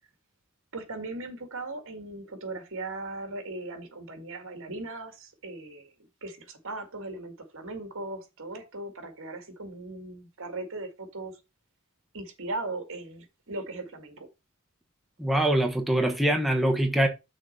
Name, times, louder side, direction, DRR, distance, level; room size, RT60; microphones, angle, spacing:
voice 1, 0.7-5.9 6.2-11.3 12.1-14.3, right 2 dB, 65° right, 2.0 m, -38 dB
voice 2, 15.2-17.1, right 1 dB, ahead, 1.1 m, -23 dB
6.4 x 4.3 x 6.6 m
head